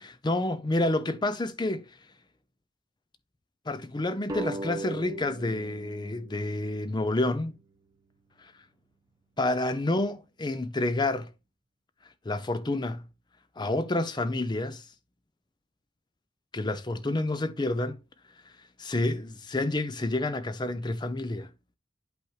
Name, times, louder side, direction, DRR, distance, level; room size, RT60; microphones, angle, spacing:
voice 1, 0.0-1.9 3.7-7.5 9.4-11.3 12.3-13.1 13.6-14.9 16.5-18.0 18.8-21.5, left 2 dB, 20° left, 0.5 m, -29 dB
sound 1, 4.3-7.5, right 2 dB, 20° right, 1.1 m, -39 dB
8.1 x 4.8 x 3.1 m
head